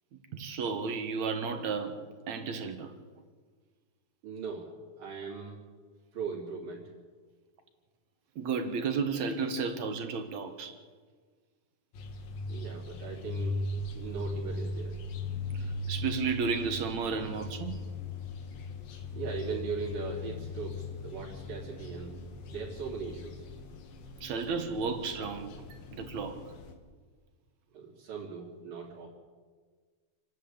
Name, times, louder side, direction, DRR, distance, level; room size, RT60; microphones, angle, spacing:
voice 1, 0.3-2.9 8.4-10.8 15.5-17.8 24.2-26.5, right 5 dB, 60° right, 2.5 m, -33 dB
voice 2, 4.2-4.7 5.0-5.6 6.1-6.8 12.5-13.6 13.9-15.0 19.1-22.1 22.5-23.5 27.7-29.1, right 5 dB, 85° right, 4.8 m, -39 dB
sound 1, 11.9-26.7, left 2 dB, 80° left, 3.5 m, -39 dB
28.0 x 11.5 x 8.7 m
omnidirectional pair, 3.9 m